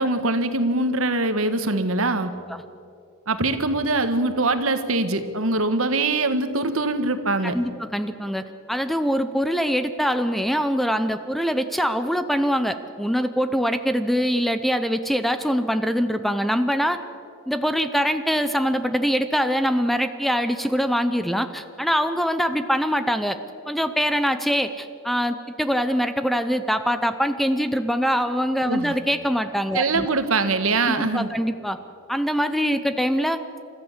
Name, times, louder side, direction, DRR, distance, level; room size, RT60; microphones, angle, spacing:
voice 1, 0.0-2.3 3.3-7.6 28.7-29.0 29.7-31.3, right 2 dB, 65° right, 9 dB, 1.5 m, -23 dB
voice 2, 7.4-8.4 8.7-17.0 17.5-23.4 23.7-30.1 30.9-31.8 32.1-33.4, equal, ahead, 10 dB, 0.6 m, -23 dB
29.0 x 14.0 x 7.4 m, 2.6 s
head